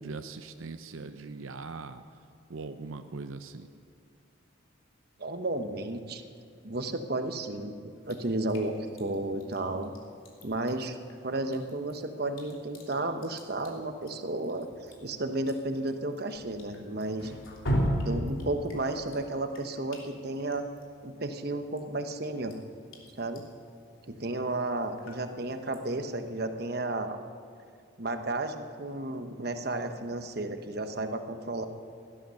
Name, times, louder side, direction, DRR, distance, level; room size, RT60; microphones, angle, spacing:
voice 1, 0.0-2.2 2.5-3.7, right 3 dB, 90° right, 8 dB, 0.6 m, -41 dB
voice 2, 5.2-6.2 6.6-7.7 8.1-9.9 10.4-11.0 11.2-14.7 15.0-17.3 18.0-20.6 21.0-22.6 23.2-23.4 24.1-27.2 28.0-31.7, right 2 dB, 50° right, 7 dB, 1.0 m, -33 dB
Drip, 8.0-26.3, equal, 85° left, 3.2 m, -39 dB
17.5 x 12.5 x 6.4 m, 2.4 s
head